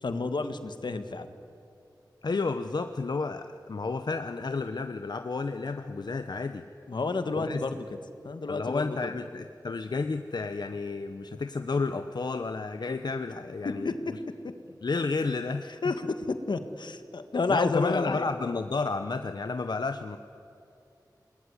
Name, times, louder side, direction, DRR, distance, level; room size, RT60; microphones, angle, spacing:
voice 1, 0.0-1.3 6.9-8.0 8.2-9.1 13.8-13.9 15.8-18.3, left 3 dB, 85° left, 9 dB, 1.6 m, -30 dB
voice 2, 2.2-6.6 7.4-7.6 8.5-14.2 14.8-15.9 17.5-20.2, left 4 dB, 70° left, 8 dB, 0.9 m, -31 dB
27.5 x 20.5 x 9.9 m, 2.7 s
wide cardioid pair, 80°, 7 cm